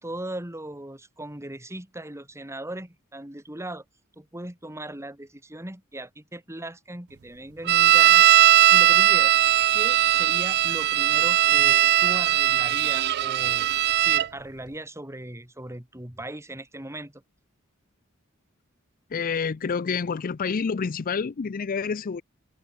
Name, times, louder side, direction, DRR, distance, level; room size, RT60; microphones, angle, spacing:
voice 1, 0.0-3.8 4.2-8.2 8.7-9.3 9.7-17.2, right 1 dB, 15° right, 2.5 m, -38 dB
sound 1, 7.7-14.3, right 13 dB, 50° right, 0.4 m, -19 dB
voice 2, 19.1-22.2, left 5 dB, 45° left, 0.4 m, -28 dB
head